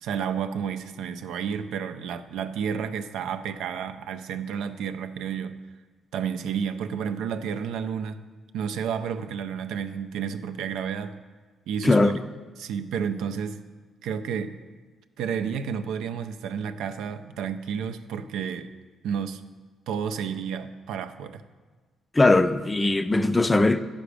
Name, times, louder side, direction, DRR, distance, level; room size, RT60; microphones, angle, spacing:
voice 1, 0.0-5.6 6.1-8.2 8.5-11.1 11.7-12.1 12.6-13.6 14.0-14.6 15.2-18.7 19.0-19.4 19.9-21.4, right 7 dB, 85° right, 0.5 m, -31 dB
voice 2, 22.1-23.8, left 2 dB, 20° left, 0.4 m, -20 dB
10.0 x 6.0 x 4.9 m
cardioid pair, 90°, 0 cm